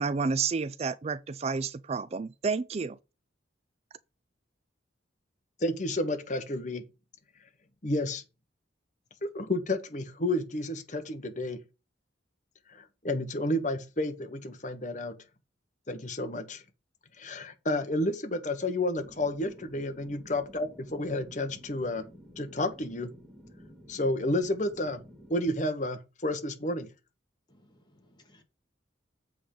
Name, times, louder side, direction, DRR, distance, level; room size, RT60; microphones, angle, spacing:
voice 1, 0.0-3.0, right 4 dB, 35° right, 0.3 m, -30 dB
voice 2, 5.6-6.8 7.8-8.2 9.2-11.6 12.7-15.2 15.9-16.6 17.2-22.1 22.4-23.1 23.9-25.0 25.3-26.9, left 1 dB, 40° left, 1.2 m, -31 dB
sound 1, 18.9-25.4, equal, ahead, 1.9 m, -52 dB
voice 3, 27.5-28.4, left 1 dB, 25° left, 2.0 m, -62 dB
7.9 x 3.8 x 6.6 m
head